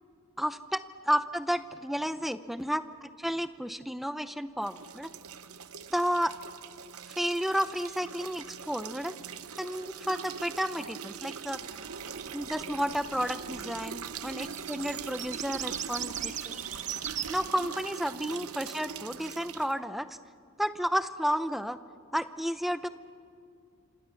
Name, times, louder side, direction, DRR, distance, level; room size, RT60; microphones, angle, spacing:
voice 1, 0.4-0.8 1.1-5.1 5.9-6.3 7.1-9.2 9.6-11.6 12.3-16.6 17.3-20.2 20.6-21.8 22.1-22.9, equal, ahead, 12 dB, 0.6 m, -32 dB
sound 1, 4.6-19.7, right 7 dB, 80° right, 0.9 m, -42 dB
sound 2, 11.6-17.5, right 9 dB, 35° right, 0.8 m, -40 dB
28.0 x 27.0 x 7.0 m, 2.4 s
head